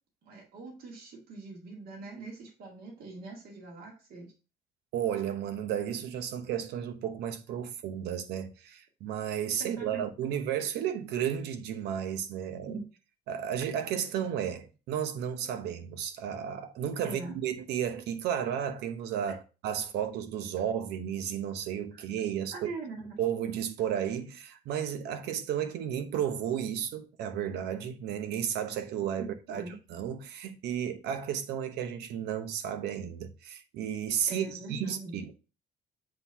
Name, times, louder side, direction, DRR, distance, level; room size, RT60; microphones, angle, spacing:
voice 1, 0.2-4.3 9.6-10.0 12.7-12.9 17.0-17.4 19.3-19.4 21.9-22.0 22.5-23.2 29.2-29.8 34.3-35.3, right 3 dB, 65° right, 2.0 m, -42 dB
voice 2, 4.9-12.8 13.3-19.4 19.6-22.7 23.2-29.6 29.9-35.4, right 9 dB, 80° right, 0.9 m, -33 dB
7.8 x 2.8 x 5.6 m
cardioid pair, 110°, 17 cm